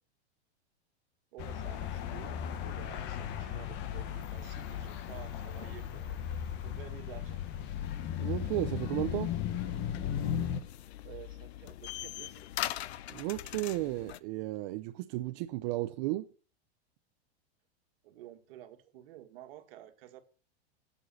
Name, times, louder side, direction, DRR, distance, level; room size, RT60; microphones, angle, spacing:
voice 1, 1.3-6.2 6.6-7.4 11.0-12.5 18.0-20.2, right 12 dB, 60° right, 2.0 m, -51 dB
sound 1, 1.4-10.6, left 9 dB, 35° left, 1.1 m, -36 dB
sound 2, 7.8-14.2, left 13 dB, 75° left, 0.8 m, -42 dB
voice 2, 8.2-9.3 13.1-16.3, right 17 dB, 40° right, 0.6 m, -34 dB
11.0 x 7.1 x 6.3 m
supercardioid pair, 150°, 33 cm